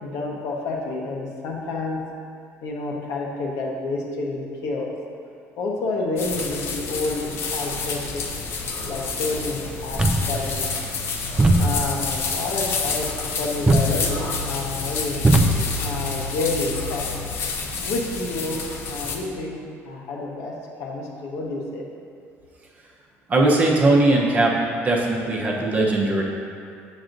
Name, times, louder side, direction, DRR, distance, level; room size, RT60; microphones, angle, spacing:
voice 1, 0.0-2.0 2.6-4.9 5.6-8.2 8.9-10.0 10.3-10.6 11.6-15.3 15.8-17.0 17.8-18.6 18.9-19.6 19.8-20.5 20.8-21.8, left 3 dB, 70° left, -1 dB, 0.9 m, -29 dB
sound 1, 6.2-19.2, left 4 dB, 50° left, 0.6 m, -29 dB
sound 2, 9.9-17.3, right 1 dB, 15° right, 0.4 m, -24 dB
voice 2, 23.3-24.6 24.8-26.2, right 2 dB, 30° right, -2 dB, 0.8 m, -19 dB
7.5 x 6.2 x 2.6 m, 2.4 s
cardioid pair, 145°, 5 cm